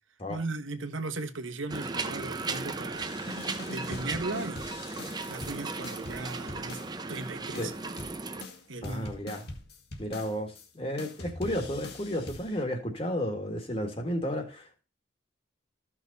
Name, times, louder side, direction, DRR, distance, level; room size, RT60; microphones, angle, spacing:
voice 1, 0.3-3.2 3.7-4.8 5.3-6.8 7.1-7.7 8.7-9.1, right 3 dB, 75° right, 1.3 m, -37 dB
sound 1, 1.7-8.4, right 3 dB, 20° right, 0.8 m, -36 dB
sound 2, 3.0-7.2 7.6-10.7 11.0-12.6, left 2 dB, 50° left, 2.0 m, -43 dB
voice 2, 8.8-9.5 10.0-14.8, equal, 30° left, 1.9 m, -33 dB
14.0 x 6.2 x 4.1 m
head